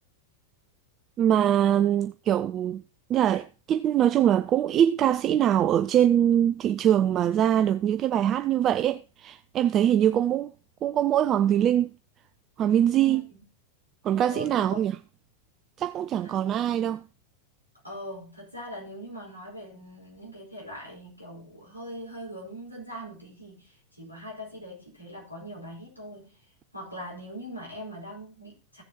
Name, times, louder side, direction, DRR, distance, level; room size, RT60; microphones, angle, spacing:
voice 1, 1.2-2.8 3.1-10.5 10.8-11.9 12.6-13.2 14.0-15.0 15.8-17.0, right 10 dB, 30° right, 0.4 m, -23 dB
voice 2, 10.0-10.4 13.0-13.4 14.2-14.9 16.2-16.4 17.8-26.4 26.7-28.8, equal, 90° left, 4.4 m, -41 dB
15.5 x 6.9 x 2.9 m
figure-of-eight pair, 90°, 0 cm